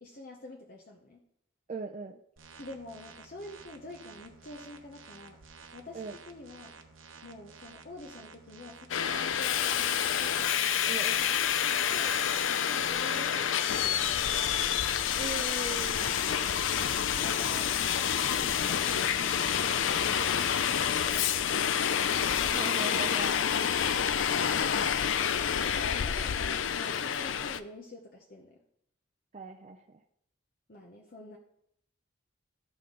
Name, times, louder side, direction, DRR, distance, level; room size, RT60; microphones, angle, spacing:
voice 1, 0.0-1.2 2.6-5.4 5.7-6.8 7.2-10.5 11.2-12.2 12.5-14.5 17.1-17.8 18.4-21.9 25.7-28.6 30.7-31.4, left 2 dB, 45° left, 0 dB, 0.8 m, -47 dB
voice 2, 1.7-2.2 5.9-6.2 10.9-11.3 15.1-16.2 22.5-23.4 25.5-25.7 29.3-30.0, right 4 dB, 35° right, 2 dB, 0.4 m, -39 dB
sound 1, 2.4-12.4, right 5 dB, 85° right, 0.9 m, -52 dB
Subway metro underground, 8.9-27.6, left 8 dB, 75° left, 0.5 m, -28 dB
13.0 x 5.6 x 3.8 m, 0.75 s
head